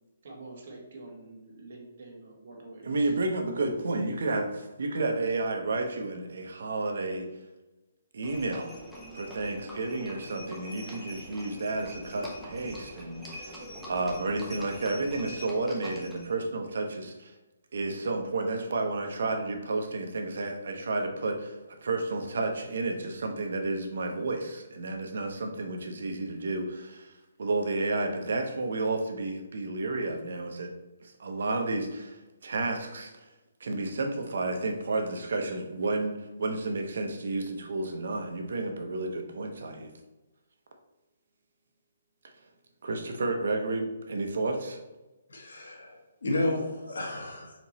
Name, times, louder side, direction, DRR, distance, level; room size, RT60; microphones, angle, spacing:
voice 1, 0.2-3.1, right 2 dB, 45° right, 0 dB, 1.2 m, -47 dB
voice 2, 2.8-7.2 8.1-8.7 9.1-17.3 17.7-21.6 21.8-27.1 27.4-30.7 31.0-33.2 33.6-39.9 42.8-44.8, right 2 dB, 60° right, 4 dB, 0.7 m, -31 dB
Livestock farm animals working animals, 8.2-16.3, equal, ahead, 0.6 m, -44 dB
voice 3, 45.3-47.5, left 2 dB, 90° left, 0 dB, 1.3 m, -32 dB
4.4 x 2.9 x 4.1 m, 1.1 s
hypercardioid pair, 175°, 0 cm